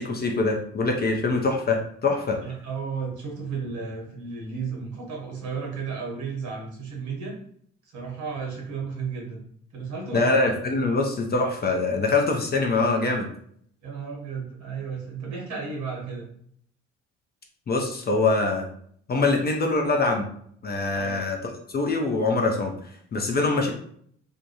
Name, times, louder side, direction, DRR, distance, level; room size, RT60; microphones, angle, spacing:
voice 1, 0.0-2.4 10.1-13.3 17.7-18.6 19.1-20.2 20.6-21.4 21.7-22.7 23.1-23.7, left 3 dB, 30° left, 2 dB, 0.5 m, -24 dB
voice 2, 2.4-7.4 7.9-9.4 9.7-10.4 13.8-16.3 21.0-21.2, right 5 dB, 60° right, -1 dB, 1.1 m, -33 dB
2.7 x 2.2 x 2.8 m, 0.64 s
hypercardioid pair, 50°, 33 cm